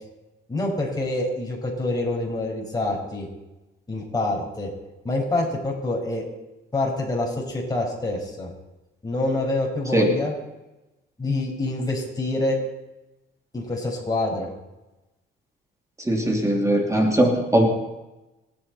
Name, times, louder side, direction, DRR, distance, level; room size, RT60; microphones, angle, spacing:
voice 1, 0.5-3.3 3.9-4.7 5.0-6.2 6.7-8.5 9.0-10.4 11.2-12.6 13.5-14.5, left 2 dB, 20° left, -2 dB, 5.6 m, -26 dB
voice 2, 16.1-17.7, right 1 dB, 15° right, 1 dB, 3.0 m, -20 dB
27.5 x 9.8 x 4.4 m, 1.0 s
cardioid pair, 90°, 20 cm